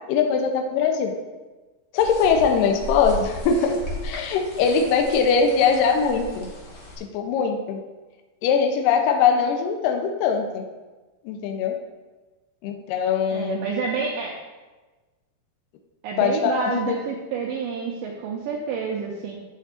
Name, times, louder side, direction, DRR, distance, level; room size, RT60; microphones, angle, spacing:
voice 1, 0.1-1.1 1.9-6.5 7.0-7.8 8.4-10.6 11.3-11.8 12.6-13.6 16.2-16.9, left 6 dB, 75° left, 4 dB, 2.2 m, -21 dB
sound 1, 2.0-7.0, equal, 55° left, 1.5 m, -35 dB
voice 2, 13.3-14.3 16.0-19.4, right 5 dB, 75° right, -2 dB, 2.2 m, -28 dB
8.2 x 8.0 x 2.5 m, 1.2 s
omnidirectional pair, 4.3 m